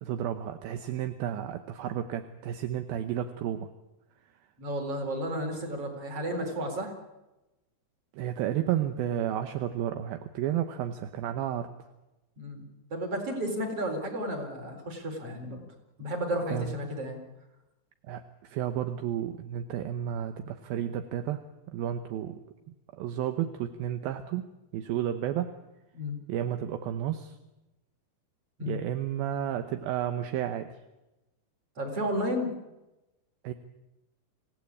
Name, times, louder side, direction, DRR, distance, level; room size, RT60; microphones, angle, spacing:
voice 1, 0.0-3.7 8.1-11.7 16.5-16.7 18.1-21.4 21.7-22.4 22.9-25.6 26.3-27.4 28.7-30.7 33.4-33.5, right 10 dB, 75° right, 7 dB, 2.6 m, -32 dB
voice 2, 4.6-6.9 12.4-12.6 12.9-15.6 16.0-17.2 25.9-26.2 28.6-28.8 31.8-32.5, equal, 35° right, 3 dB, 4.9 m, -32 dB
27.0 x 16.5 x 8.5 m, 1.0 s
omnidirectional pair, 4.7 m